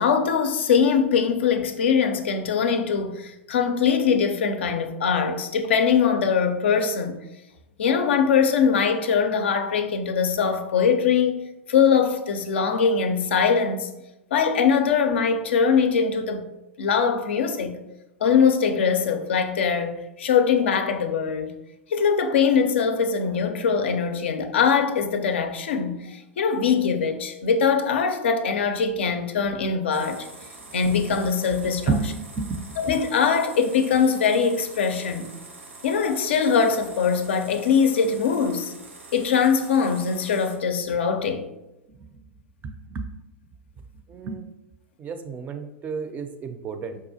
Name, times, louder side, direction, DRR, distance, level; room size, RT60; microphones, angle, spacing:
voice 1, 0.0-7.2 7.8-11.4 11.7-13.9 14.3-16.5 16.8-17.8 18.2-21.5 21.9-30.3 30.7-31.9 32.8-35.3 35.8-38.7 39.1-41.5, left 6 dB, 70° left, 0.4 m, -22 dB
sound 1, 29.9-40.6, right 2 dB, 85° right, 0.8 m, -45 dB
voice 2, 31.9-32.8 41.9-42.0 42.6-43.1 44.1-44.5 45.0-47.0, right 4 dB, 25° right, 0.4 m, -30 dB
4.9 x 2.3 x 2.7 m
hypercardioid pair, 95°, 6 cm